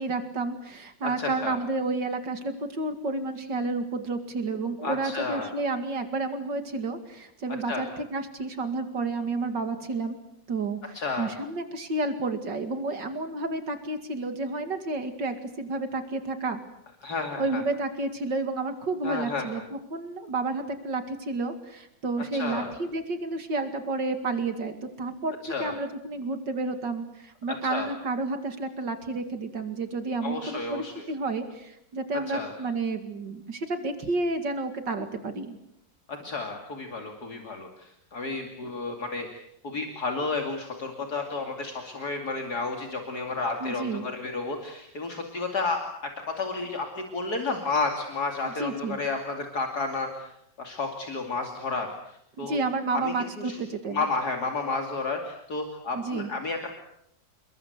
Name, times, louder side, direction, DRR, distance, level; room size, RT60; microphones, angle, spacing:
voice 1, 0.0-10.2 10.5-16.6 17.1-35.6 43.6-44.1 48.4-49.0 52.4-54.0 55.9-56.3, right 3 dB, 75° right, 8 dB, 2.9 m, -31 dB
voice 2, 1.2-1.6 4.8-5.5 7.7-7.9 10.9-11.3 17.0-17.6 19.0-19.5 22.3-22.7 25.4-25.7 27.5-27.9 30.2-31.0 32.3-32.5 36.1-46.1 46.4-52.6 52.9-53.6 53.9-56.7, left 3 dB, 60° left, 3 dB, 3.2 m, -32 dB
29.5 x 21.5 x 8.1 m, 0.77 s
omnidirectional pair, 1.9 m